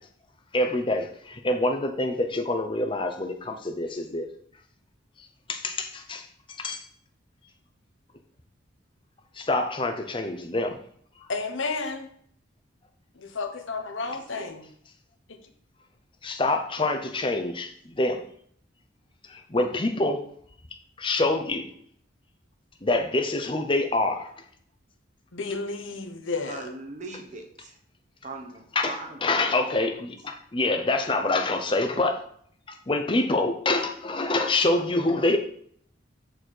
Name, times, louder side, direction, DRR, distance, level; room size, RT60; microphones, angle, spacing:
voice 1, 0.5-4.3 5.5-6.2 6.6-6.8 9.4-10.8 16.2-18.2 19.3-20.2 21.0-21.7 22.8-24.3 28.8-28.9 29.2-32.2 32.7-35.4, left 2 dB, 25° left, 5 dB, 0.6 m, -26 dB
voice 2, 11.3-12.1 13.2-14.7 15.3-15.4 25.3-26.7, left 3 dB, 75° left, 6 dB, 1.0 m, -32 dB
voice 3, 14.0-14.5 16.8-16.9 26.4-27.8 28.2-29.8, right 3 dB, 35° right, 3 dB, 1.1 m, -41 dB
6.7 x 4.2 x 4.5 m, 0.63 s
head